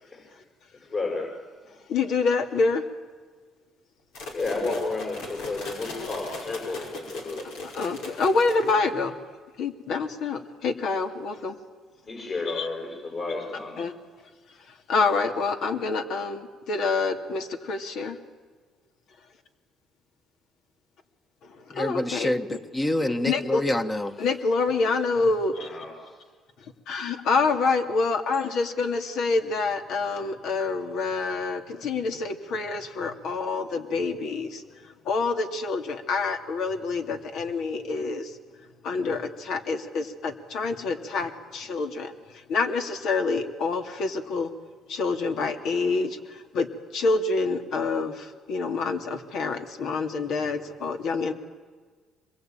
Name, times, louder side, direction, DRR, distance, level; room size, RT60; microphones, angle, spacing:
voice 1, 0.8-1.3 4.3-7.5 12.1-13.8 25.6-26.1, left 3 dB, 45° left, 6.1 m, -32 dB
voice 2, 1.9-2.8 4.6-4.7 6.0-6.1 7.7-9.2 9.6-11.6 12.5-12.7 13.8-13.9 14.9-18.2 21.6-22.3 23.3-23.6 24.2-25.8 26.9-38.4 38.8-44.5 44.9-51.3, left 4 dB, 70° left, 2.6 m, -27 dB
sound 1, 4.1-9.0, left 2 dB, 90° left, 5.3 m, -38 dB
voice 3, 21.7-24.2, left 1 dB, 20° left, 1.4 m, -27 dB
25.5 x 22.5 x 9.1 m
cardioid pair, 90°, 0 cm